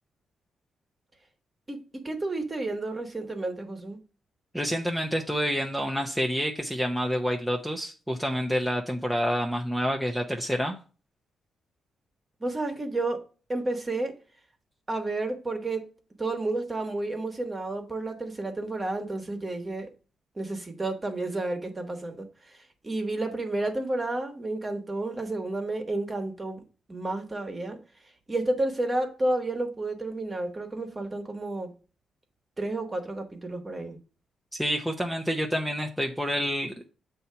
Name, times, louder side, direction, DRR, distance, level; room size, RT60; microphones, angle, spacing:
voice 1, 1.7-4.0 12.4-13.2 13.5-14.1 14.9-15.9 16.2-19.9 20.4-26.6 26.9-27.8 28.3-31.7 32.6-34.0, right 2 dB, 25° right, 1.3 m, -31 dB
voice 2, 4.5-10.8 34.6-36.9, equal, ahead, 0.7 m, -28 dB
7.9 x 2.9 x 5.6 m
cardioid pair, 115°, 0 cm